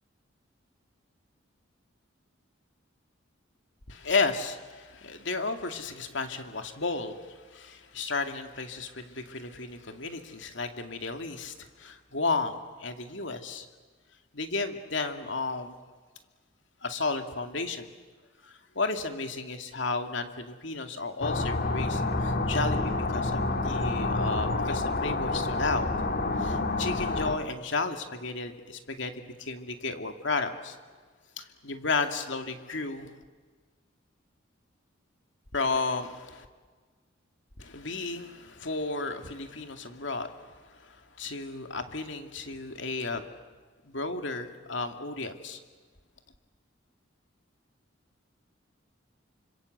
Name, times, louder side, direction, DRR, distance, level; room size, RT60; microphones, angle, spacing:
voice 1, 3.9-13.7 14.3-15.8 16.8-17.9 18.4-25.9 26.4-30.8 31.4-33.1 35.5-36.5 37.6-43.3 43.8-45.6, left 3 dB, 70° left, 6 dB, 2.4 m, -33 dB
sound 1, 21.2-27.4, left 2 dB, 50° left, 2.0 m, -28 dB
28.5 x 26.0 x 8.0 m, 1.4 s
head